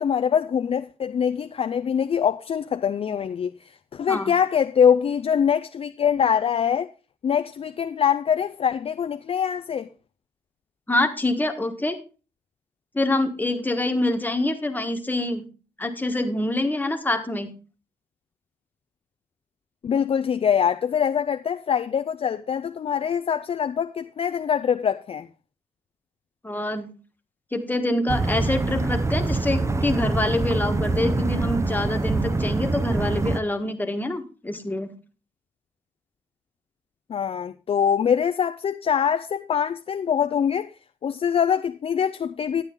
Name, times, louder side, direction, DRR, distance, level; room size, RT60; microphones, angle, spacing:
voice 1, 0.0-6.9 7.2-9.9 19.8-25.3 37.1-40.7 41.0-42.6, left 8 dB, 40° left, 0.4 m, -23 dB
voice 2, 10.9-12.0 12.9-15.4 15.8-17.5 26.4-26.9 27.5-34.9, left 1 dB, 10° left, 1.3 m, -25 dB
sound 1, 28.1-33.4, right 3 dB, 20° right, 0.6 m, -25 dB
10.5 x 8.9 x 3.6 m
cardioid pair, 90°, 15 cm